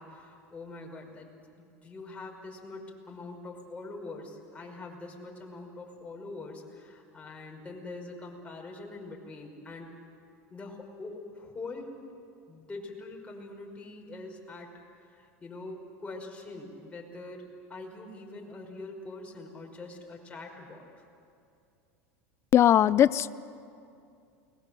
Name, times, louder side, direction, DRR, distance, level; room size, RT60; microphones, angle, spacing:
voice 1, 0.0-9.9 10.5-11.9 12.5-14.7 15.0-21.0, left 2 dB, 15° left, 0 dB, 5.6 m, -44 dB
voice 2, 22.5-23.3, left 11 dB, 35° left, 19 dB, 0.6 m, -20 dB
29.5 x 21.5 x 7.7 m, 2.5 s
supercardioid pair, 115°, 8 cm